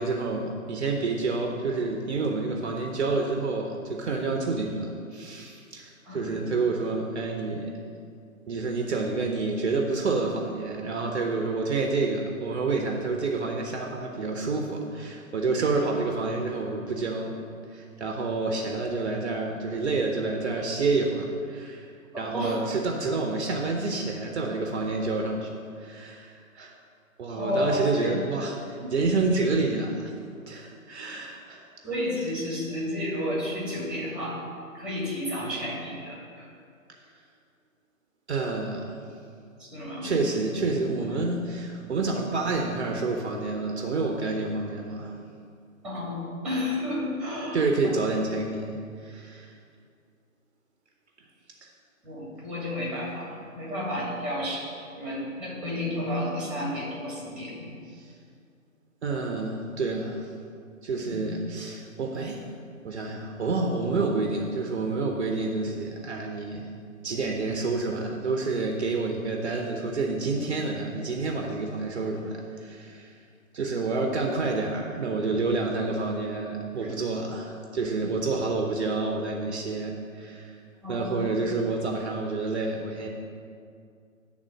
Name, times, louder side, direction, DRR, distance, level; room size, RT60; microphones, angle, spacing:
voice 1, 0.0-7.7 8.5-17.4 17.7-26.7 27.2-30.1 30.5-31.7 36.9-37.0 38.3-39.0 40.0-45.2 47.5-49.6 51.6-51.7 57.9-58.1 59.0-60.3 60.8-62.6 62.8-66.7 67.0-73.2 73.5-80.6 80.9-83.1, right 3 dB, 50° right, 2 dB, 0.9 m, -29 dB
voice 2, 6.1-6.4 22.1-22.6 27.3-28.2 28.8-28.9 31.0-31.1 31.8-34.4 34.7-36.5 39.6-40.2 41.1-41.2 45.8-47.6 47.8-48.0 52.0-57.8 61.0-61.3 76.8-76.9 80.8-81.4, left 1 dB, ahead, -6 dB, 2.2 m, -32 dB
10.5 x 3.7 x 6.3 m, 2.3 s
figure-of-eight pair, 135°, 41 cm